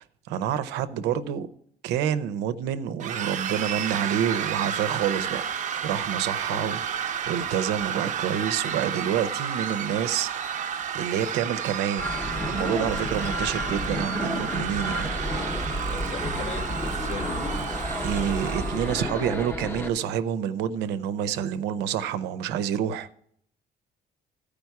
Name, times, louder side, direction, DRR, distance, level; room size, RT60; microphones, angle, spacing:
voice 1, 0.0-1.5 1.8-5.4 5.8-12.1 12.5-15.1 18.0-23.1, right 9 dB, 90° right, 0.7 m, -28 dB
sound 1, 3.0-19.3, right 8 dB, 45° right, 0.7 m, -31 dB
sound 2, 12.0-19.9, left 1 dB, 15° left, 0.8 m, -31 dB
voice 2, 15.9-17.3, left 7 dB, 40° left, 0.4 m, -39 dB
14.0 x 5.0 x 4.7 m
cardioid pair, 110°, 17 cm